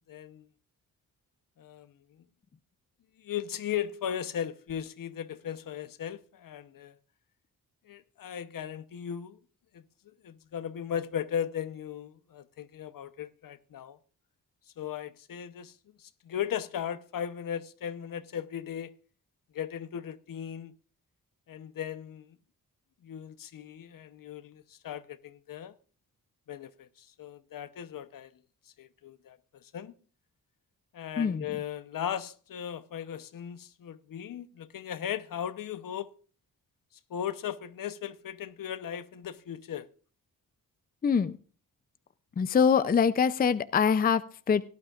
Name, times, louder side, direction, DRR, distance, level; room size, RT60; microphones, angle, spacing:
voice 1, 0.1-0.5 1.6-1.9 3.2-6.9 7.9-9.4 9.7-9.8 10.2-14.0 14.8-18.9 19.5-20.7 21.5-22.4 23.0-25.7 26.5-28.3 28.8-29.9 30.9-36.1 37.1-39.9, left 9 dB, 70° left, 0.8 m, -37 dB
voice 2, 31.2-31.5 41.0-41.4 42.4-44.6, left 6 dB, 25° left, 0.4 m, -24 dB
17.5 x 11.5 x 2.4 m
wide cardioid pair, 130°, 35 cm